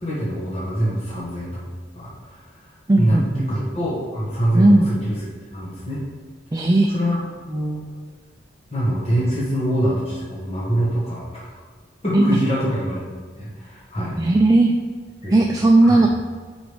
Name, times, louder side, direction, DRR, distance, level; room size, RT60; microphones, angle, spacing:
voice 1, 0.0-1.6 1.9-2.4 3.0-3.2 3.5-5.2 5.5-6.0 6.9-7.2 7.5-7.8 8.7-11.4 12.0-13.0 13.4-14.2 15.2-16.0, right 1 dB, 35° left, -7 dB, 1.5 m, -24 dB
voice 2, 2.9-3.5 4.5-4.9 6.5-6.9 12.1-12.4 14.2-14.7 15.3-16.1, right 2 dB, 20° right, 1 dB, 0.3 m, -16 dB
5.1 x 4.8 x 5.2 m, 1.5 s
head